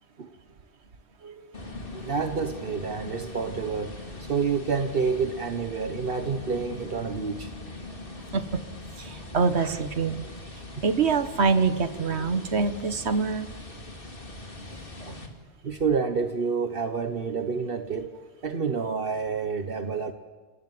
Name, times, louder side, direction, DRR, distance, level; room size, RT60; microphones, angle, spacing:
sound 1, 1.5-15.3, left 2 dB, 55° left, 2.8 m, -41 dB
voice 1, 2.0-7.5 9.6-9.8 15.6-18.1 18.4-20.1, right 5 dB, 60° right, 8 dB, 1.3 m, -28 dB
voice 2, 9.0-10.3 10.8-13.5 15.0-15.2, right 5 dB, 90° right, 11 dB, 1.5 m, -25 dB
29.0 x 19.0 x 7.7 m, 1.3 s
omnidirectional pair, 1.1 m